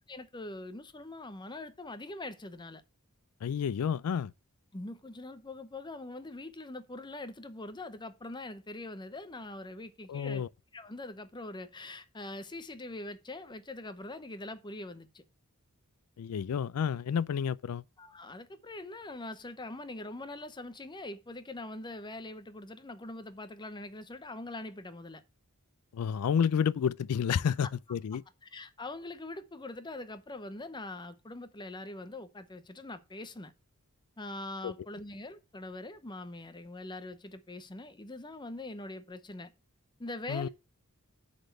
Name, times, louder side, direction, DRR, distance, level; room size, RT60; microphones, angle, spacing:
voice 1, 0.1-2.8 4.7-10.4 10.7-15.2 18.0-25.2 27.5-27.6 28.4-33.5 34.2-39.5 40.0-40.5, left 2 dB, 20° left, 0.8 m, -43 dB
voice 2, 3.4-4.3 10.1-10.5 16.2-17.8 25.9-28.2 34.6-34.7 40.3-40.5, left 7 dB, 75° left, 0.4 m, -30 dB
7.9 x 4.3 x 6.5 m
head